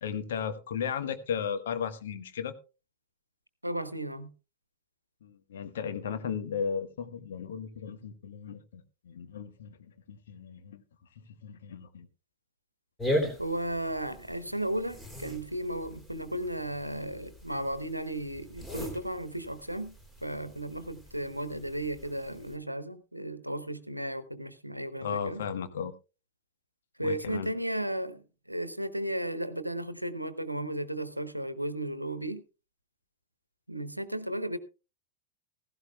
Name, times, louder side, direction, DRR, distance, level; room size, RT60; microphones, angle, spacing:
voice 1, 0.0-2.5 5.2-10.8 11.2-12.1 25.0-25.9 27.0-27.5, left 7 dB, 60° left, 1.3 m, -35 dB
voice 2, 3.6-4.3 13.4-25.4 27.0-32.4 33.7-34.6, right 1 dB, 90° right, 1.0 m, -35 dB
sound 1, 13.0-22.5, equal, 10° left, 3.3 m, -39 dB
16.0 x 15.5 x 2.3 m
figure-of-eight pair, 90°, 0 cm